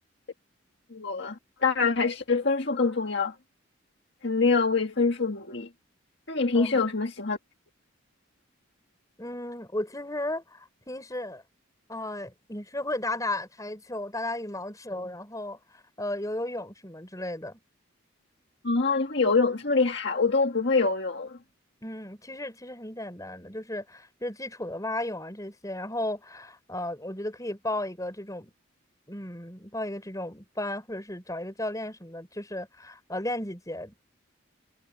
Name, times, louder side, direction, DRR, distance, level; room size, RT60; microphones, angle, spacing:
voice 1, 0.9-3.4 4.2-5.7 6.3-7.4 18.6-21.4, left 4 dB, 55° left, 1.8 m, -25 dB
voice 2, 9.2-11.4 11.9-17.6 21.8-28.5 29.1-34.0, left 1 dB, 15° left, 5.3 m, -34 dB
head